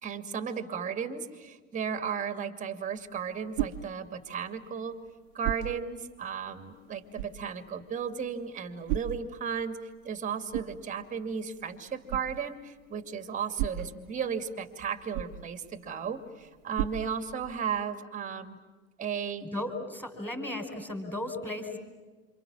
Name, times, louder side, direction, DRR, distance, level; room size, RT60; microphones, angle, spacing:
voice 1, 0.0-5.0 5.3-9.8 10.0-18.6 19.0-19.5, right 7 dB, 15° right, 10 dB, 2.5 m, -35 dB
sound 1, 2.9-17.8, right 12 dB, 40° right, 1.5 m, -40 dB
voice 2, 19.5-21.8, left 1 dB, 5° left, 4 dB, 5.0 m, -35 dB
29.0 x 28.0 x 7.4 m, 1.4 s
figure-of-eight pair, 90°, 43 cm